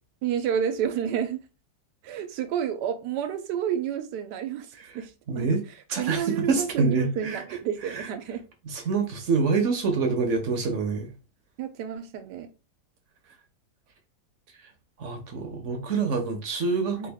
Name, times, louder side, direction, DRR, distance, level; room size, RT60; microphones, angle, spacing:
voice 1, 0.2-1.4 2.0-5.5 6.0-8.4 11.6-12.5 17.0-17.1, right 9 dB, 85° right, 1.2 m, -30 dB
voice 2, 5.3-5.6 5.9-7.4 7.8-8.1 8.7-11.1 15.0-17.1, right 4 dB, 60° right, 0.9 m, -26 dB
3.5 x 2.3 x 3.4 m
omnidirectional pair, 1.8 m